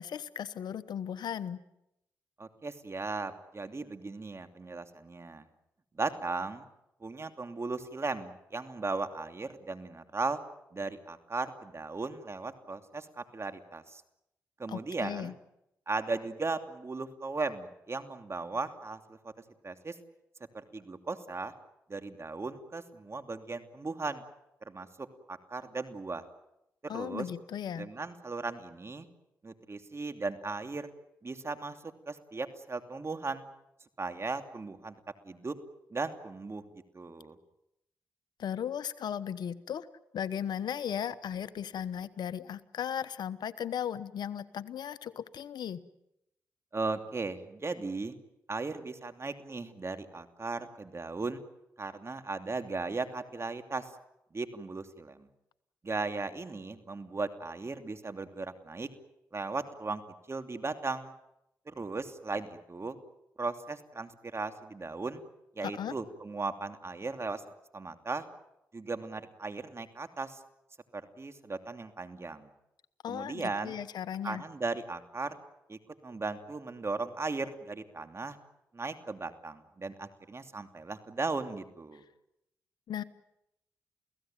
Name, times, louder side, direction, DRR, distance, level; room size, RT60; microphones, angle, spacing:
voice 1, 0.0-1.6 14.7-15.3 26.9-27.9 38.4-39.9 40.1-45.8 65.6-65.9 73.0-74.4 82.9-83.0, left 9 dB, 80° left, 14 dB, 1.1 m, -36 dB
voice 2, 2.4-5.5 5.9-6.7 7.0-10.4 10.7-14.0 14.6-15.3 15.9-19.3 19.6-19.9 20.5-21.5 21.9-24.2 24.6-24.9 25.3-26.2 26.8-27.3 27.8-29.1 29.4-30.9 31.2-31.8 32.1-33.5 34.0-34.9 35.2-35.5 35.9-36.6 36.9-37.3 46.7-48.1 48.5-51.4 51.8-53.9 54.3-55.3 55.8-58.9 59.3-60.0 60.3-61.1 61.7-63.0 63.4-65.2 65.6-67.4 67.7-68.2 68.7-70.4 70.9-72.5 73.1-73.8 74.2-75.3 75.7-78.3 78.7-82.0, right 3 dB, 40° right, 8 dB, 2.9 m, -37 dB
29.5 x 17.0 x 9.1 m, 0.84 s
cardioid pair, 55°, 7 cm